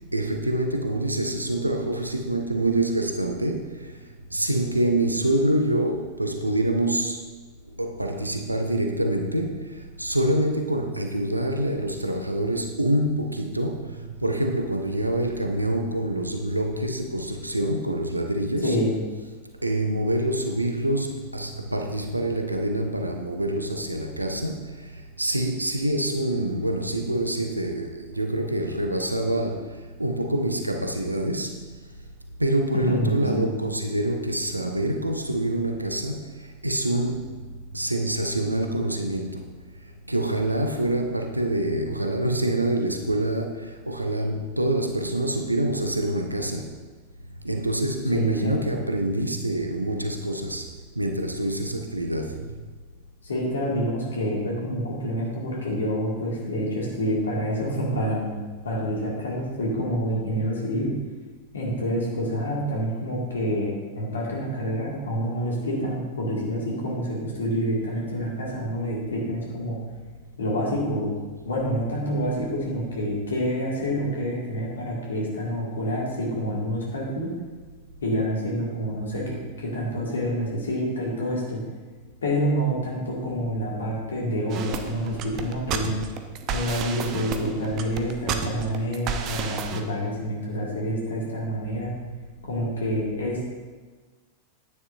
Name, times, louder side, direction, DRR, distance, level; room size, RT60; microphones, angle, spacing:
voice 1, 0.1-4.0 4.3-7.3 7.8-18.8 19.6-29.7 30.0-31.6 32.4-36.2 36.6-37.3 37.7-39.5 40.1-46.7 47.4-50.7 51.0-52.4, right 1 dB, 85° right, 4 dB, 0.6 m, -26 dB
voice 2, 18.6-19.0 32.7-33.5 48.1-48.7 53.2-58.4 58.6-60.9 61.5-69.8 70.4-71.2 71.5-77.3 78.0-81.6 82.2-86.0 86.5-91.9 92.4-93.4, equal, 70° left, -3 dB, 2.0 m, -27 dB
sound 1, 84.5-89.8, right 6 dB, 35° right, 0.7 m, -31 dB
9.6 x 9.4 x 2.6 m, 1.4 s
figure-of-eight pair, 90°, 0 cm